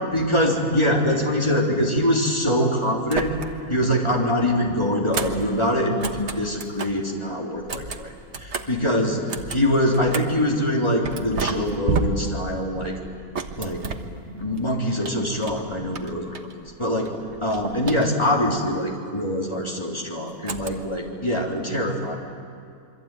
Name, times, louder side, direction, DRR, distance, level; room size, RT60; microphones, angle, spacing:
voice 1, 0.1-3.3 3.7-9.2 9.5-12.9 13.6-13.8 14.3-16.4 16.8-17.1 17.4-22.2, equal, 20° left, -2 dB, 3.7 m, -23 dB
sound 1, 3.0-3.8 4.1-7.1 7.5-10.5 11.0-14.6 15.0-16.8 17.0-18.5 20.4-21.1, right 4 dB, 50° right, 1.5 m, -32 dB
27.5 x 23.0 x 9.2 m, 2.4 s
omnidirectional pair, 1.6 m